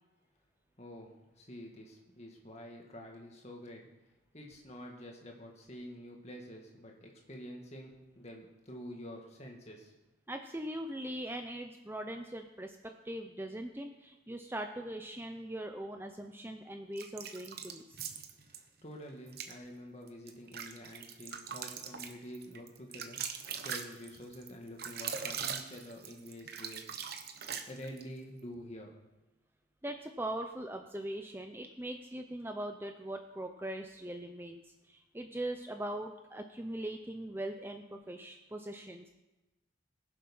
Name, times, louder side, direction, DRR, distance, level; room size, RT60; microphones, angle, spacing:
voice 1, 0.8-3.9 4.3-9.9 18.4-26.9 27.7-28.9, equal, 35° left, 1 dB, 2.1 m, -48 dB
voice 2, 10.3-12.8 13.0-17.8 29.8-34.6 34.9-39.1, right 1 dB, 10° right, 5 dB, 0.6 m, -41 dB
sound 1, 17.0-18.6 19.3-19.5 20.1-28.1, right 7 dB, 50° right, 1.0 m, -41 dB
19.5 x 7.5 x 5.5 m, 1.0 s
head